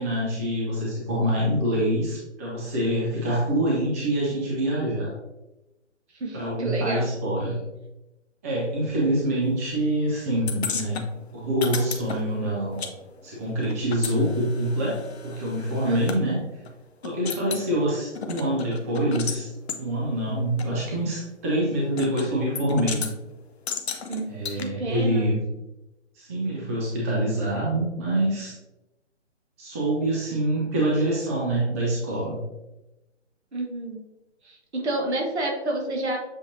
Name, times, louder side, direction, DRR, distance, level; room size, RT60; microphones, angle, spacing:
voice 1, 0.0-5.1 6.3-7.6 8.4-11.0 11.3-12.8 13.2-16.4 17.0-19.5 19.8-23.1 24.3-25.4 26.2-28.5 29.6-32.4, right 1 dB, 15° right, -5 dB, 0.5 m, -25 dB
voice 2, 6.1-7.1 15.8-16.0 24.1-25.3 33.5-34.0 34.4-36.2, right 1 dB, 65° right, 0 dB, 1.4 m, -29 dB
Satellite bad signal, 10.5-12.9 13.2-16.2 16.7-16.8 17.0-17.7 18.2-19.4 19.7-19.8 20.6-20.7 22.0-22.3 22.6-23.1 23.7-24.6, left 6 dB, 60° left, 0.7 m, -34 dB
7.4 x 2.7 x 2.6 m, 0.98 s
figure-of-eight pair, 140°, 36 cm